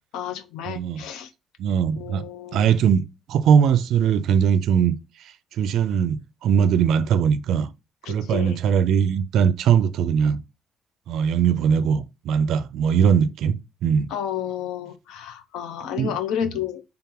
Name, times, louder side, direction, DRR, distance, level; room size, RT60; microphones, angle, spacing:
voice 1, 0.1-1.3 2.0-2.6 8.0-8.6 14.1-16.8, left 9 dB, 90° left, 0.5 m, -31 dB
voice 2, 0.7-1.1 1.6-2.2 2.5-3.0 3.3-5.0 5.6-7.7 8.1-10.4 11.1-14.1 16.0-16.1, right 7 dB, 65° right, 0.4 m, -20 dB
3.5 x 2.9 x 3.6 m
cardioid pair, 160°, 0 cm